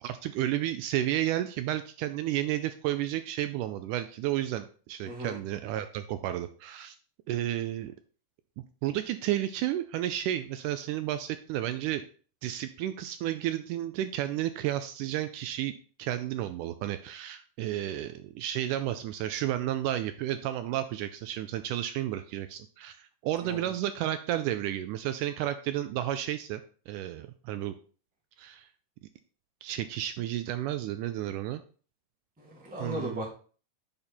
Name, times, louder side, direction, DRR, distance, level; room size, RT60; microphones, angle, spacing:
voice 1, 0.0-7.0 7.3-7.9 8.8-12.0 12.4-15.7 16.0-26.6 26.9-27.7 28.4-28.7 29.6-31.6 32.8-33.2, right 13 dB, 80° right, 10 dB, 2.0 m, -32 dB
voice 2, 5.0-5.4 23.4-23.7 32.4-33.3, equal, 5° right, -2 dB, 1.2 m, -37 dB
8.7 x 4.1 x 4.3 m, 0.40 s
omnidirectional pair, 3.8 m